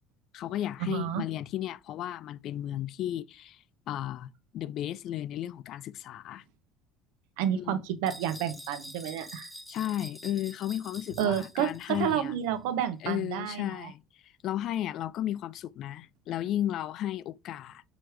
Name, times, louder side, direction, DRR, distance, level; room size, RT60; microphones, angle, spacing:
voice 1, 0.3-6.4 7.6-7.8 9.7-12.3 13.0-17.8, left 12 dB, 55° left, 0.4 m, -34 dB
voice 2, 0.9-1.2 7.4-9.5 11.2-13.9, right 9 dB, 85° right, 0.9 m, -30 dB
sound 1, 8.1-12.2, equal, ahead, 1.2 m, -47 dB
6.1 x 3.3 x 4.7 m
cardioid pair, 125°, 0 cm